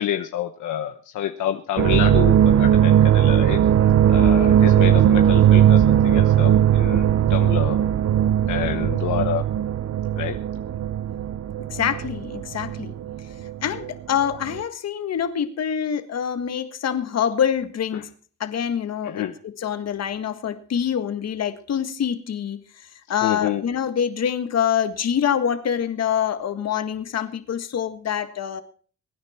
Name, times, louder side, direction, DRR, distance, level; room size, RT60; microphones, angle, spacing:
voice 1, 0.0-3.6 4.1-7.8 8.5-9.4 10.1-10.4 17.9-18.0 19.0-19.3 23.2-23.6, left 11 dB, 80° left, 7 dB, 1.0 m, -28 dB
sound 1, 1.8-13.9 14.2-14.6, right 10 dB, 65° right, 0.8 m, -18 dB
voice 2, 11.7-12.9 13.6-18.1 18.4-28.6, left 8 dB, 55° left, 10 dB, 1.7 m, -25 dB
22.0 x 9.7 x 4.4 m, 0.42 s
cardioid pair, 90°, 30 cm